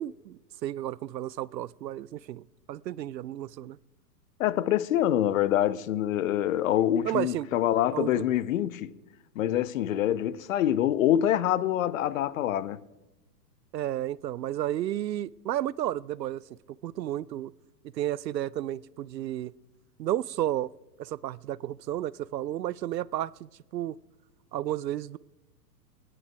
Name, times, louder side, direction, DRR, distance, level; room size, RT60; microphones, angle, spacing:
voice 1, 0.0-3.8 7.0-7.5 7.9-8.2 13.7-16.4 16.7-17.5 17.9-19.5 20.0-20.7 21.0-24.0 24.5-25.2, right 12 dB, 80° right, 0.6 m, -32 dB
voice 2, 4.4-8.9 9.4-12.8, left 11 dB, 55° left, 0.7 m, -25 dB
24.5 x 10.0 x 4.5 m
hypercardioid pair, 120°, 50 cm